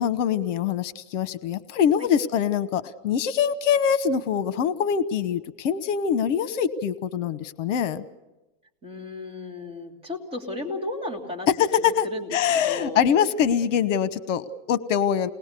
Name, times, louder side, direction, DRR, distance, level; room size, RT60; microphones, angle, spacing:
voice 1, 0.0-8.0 11.6-12.0 12.3-15.3, left 8 dB, 70° left, 15 dB, 1.1 m, -24 dB
voice 2, 8.8-11.5 11.8-12.3 12.7-13.0, left 2 dB, 15° right, 0 dB, 3.0 m, -34 dB
29.0 x 20.0 x 6.8 m, 1.0 s
supercardioid pair, 155°, 39 cm